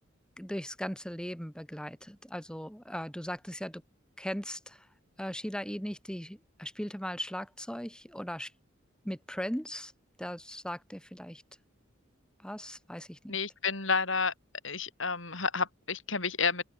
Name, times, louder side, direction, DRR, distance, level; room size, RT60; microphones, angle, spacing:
voice 1, 0.4-3.8 4.2-4.9 5.2-8.5 9.0-9.9 10.2-11.4 12.4-13.4, equal, 5° left, 4.7 m, -38 dB
voice 2, 13.3-14.3 14.6-16.6, left 5 dB, 70° left, 7.9 m, -30 dB
open air
head